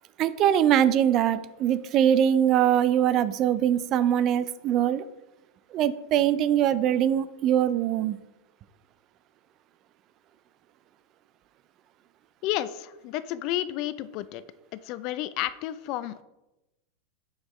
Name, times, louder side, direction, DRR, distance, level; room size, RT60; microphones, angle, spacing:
voice 1, 0.2-5.0 5.7-8.2, right 10 dB, 40° right, 15 dB, 0.3 m, -22 dB
voice 2, 12.4-14.4 14.7-16.2, left 14 dB, 50° left, 15 dB, 0.3 m, -31 dB
6.5 x 4.8 x 3.0 m, 0.98 s
supercardioid pair, 125°, 0 cm